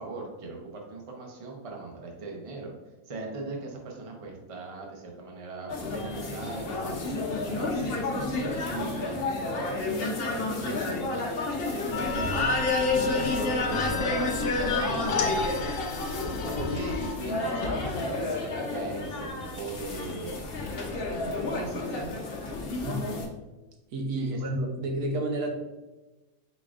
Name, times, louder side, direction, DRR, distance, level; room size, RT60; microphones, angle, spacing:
voice 1, 0.0-2.7 3.0-8.1 8.7-9.2 10.6-11.0 12.1-15.3 16.4-20.4 21.5-22.1 24.1-24.4, right 3 dB, 30° right, 0 dB, 0.7 m, -39 dB
sound 1, 5.7-23.3, left 3 dB, 50° left, 0.8 m, -30 dB
sound 2, 11.9-17.2, left 3 dB, 70° left, 1.1 m, -32 dB
voice 2, 11.9-12.2 22.8-23.3 23.9-25.5, right 1 dB, 80° right, 1 dB, 1.4 m, -31 dB
4.7 x 4.1 x 2.5 m, 1.1 s
omnidirectional pair, 1.5 m